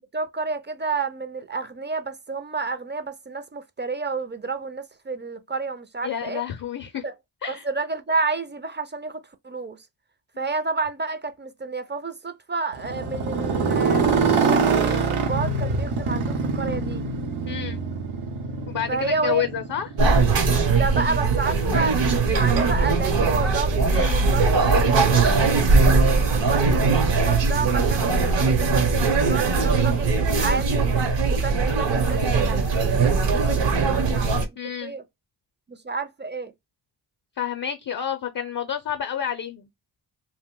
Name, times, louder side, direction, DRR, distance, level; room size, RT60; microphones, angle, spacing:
voice 1, 0.1-6.4 7.0-7.1 7.5-9.8 10.4-17.1 18.9-19.4 20.7-25.7 26.1-30.9 31.3-35.0 35.7-36.5, right 4 dB, 25° right, 0.5 m, -30 dB
voice 2, 6.0-7.0 7.4-7.6 17.5-17.8 18.7-19.9 23.9-24.2 34.6-34.9 37.4-39.7, left 9 dB, 45° left, 0.5 m, -29 dB
Motorcycle, 12.7-20.8, right 4 dB, 85° right, 0.8 m, -25 dB
sound 1, 20.0-34.5, right 4 dB, 60° right, 0.9 m, -20 dB
2.5 x 2.1 x 3.6 m
cardioid pair, 50°, 49 cm